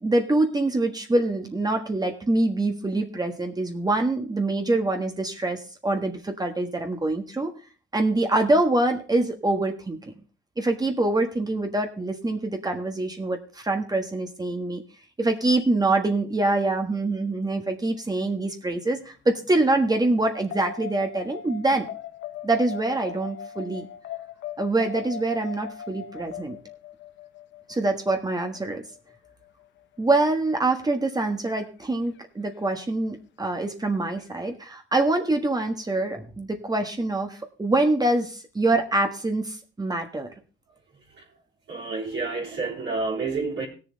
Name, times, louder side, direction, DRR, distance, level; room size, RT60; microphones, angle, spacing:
voice 1, 0.0-7.5 7.9-10.1 10.6-14.8 15.2-21.9 22.4-23.9 24.6-26.6 27.7-28.8 30.0-40.3, right 2 dB, 20° right, 1.4 m, -25 dB
sound 1, 20.5-28.9 31.6-31.7, left 7 dB, 70° left, 0.7 m, -38 dB
voice 2, 41.7-43.7, right 3 dB, 65° right, 3.4 m, -29 dB
17.5 x 7.0 x 3.9 m
cardioid pair, 90°, 20 cm